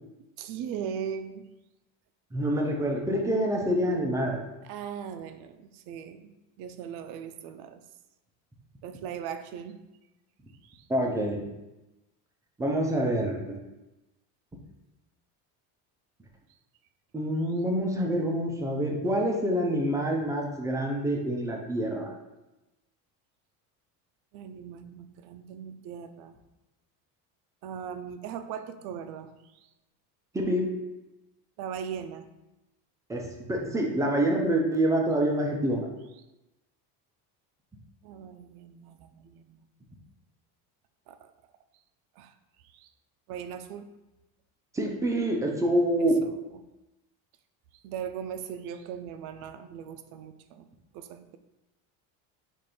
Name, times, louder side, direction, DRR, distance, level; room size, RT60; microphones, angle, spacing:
voice 1, 0.4-1.5 4.6-7.8 8.8-9.8 10.6-10.9 24.3-26.4 27.6-29.3 31.6-32.3 38.0-39.6 41.1-41.3 42.2-42.3 42.7-42.9 43.3-43.9 46.0-46.3 47.8-50.7 50.9-51.4, right 8 dB, 65° right, 9 dB, 0.5 m, -39 dB
voice 2, 2.3-4.4 10.9-11.4 12.6-13.6 17.1-22.1 30.3-30.7 33.1-35.9 44.7-46.2, right 1 dB, 10° right, 0 dB, 0.3 m, -26 dB
4.3 x 2.5 x 4.8 m, 0.98 s
cardioid pair, 150°, 42 cm